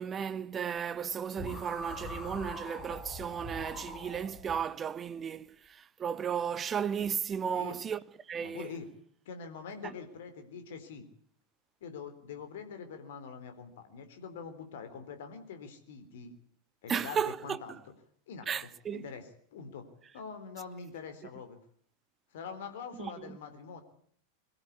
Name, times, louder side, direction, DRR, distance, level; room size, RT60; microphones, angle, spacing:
voice 1, 0.0-8.0 8.3-8.7 9.8-9.9 16.9-17.8 18.5-19.1 22.9-23.4, right 7 dB, 20° right, 0.9 m, -34 dB
sound 1, 1.4-4.6, left 1 dB, 15° left, 5.6 m, -43 dB
voice 2, 7.4-7.8 8.4-8.9 9.3-11.1 11.8-16.3 16.8-17.8 18.3-18.5 18.9-19.8 20.1-21.6 22.3-23.8, left 6 dB, 55° left, 3.8 m, -44 dB
22.0 x 15.0 x 8.6 m
figure-of-eight pair, 90°, 0 cm